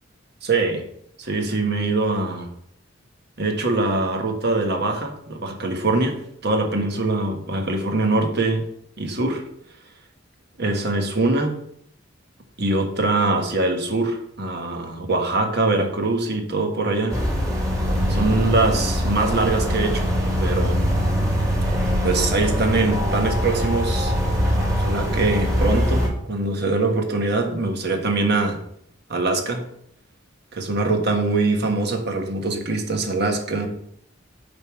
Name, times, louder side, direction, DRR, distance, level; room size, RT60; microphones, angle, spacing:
voice 1, 0.4-0.8 1.2-2.5 3.4-6.2 6.4-8.7 9.0-9.4 10.6-11.6 12.6-17.2 18.1-20.1 20.4-20.8 22.0-24.1 24.7-28.6 29.1-29.6 30.5-33.7, right 2 dB, 60° right, 4 dB, 1.3 m, -23 dB
sound 1, 17.1-26.1, equal, 15° right, 1.8 m, -22 dB
7.9 x 3.6 x 6.1 m, 0.70 s
head